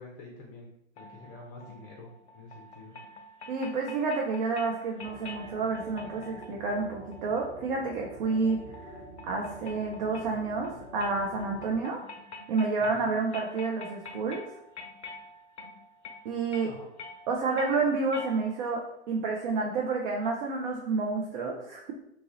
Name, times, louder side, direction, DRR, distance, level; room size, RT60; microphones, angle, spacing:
voice 1, 0.0-3.0 12.8-13.1 16.6-16.9, left 2 dB, 25° left, -1 dB, 0.5 m, -48 dB
sound 1, 1.0-18.8, left 2 dB, 75° left, 0.5 m, -47 dB
voice 2, 3.5-8.9 9.3-12.0 12.5-14.4 16.2-16.7 17.3-21.9, right 4 dB, 45° right, 0 dB, 0.5 m, -29 dB
sound 2, 5.0-11.8, right 1 dB, 5° right, 1.1 m, -47 dB
2.9 x 2.3 x 2.9 m, 0.76 s
figure-of-eight pair, 95°, 33 cm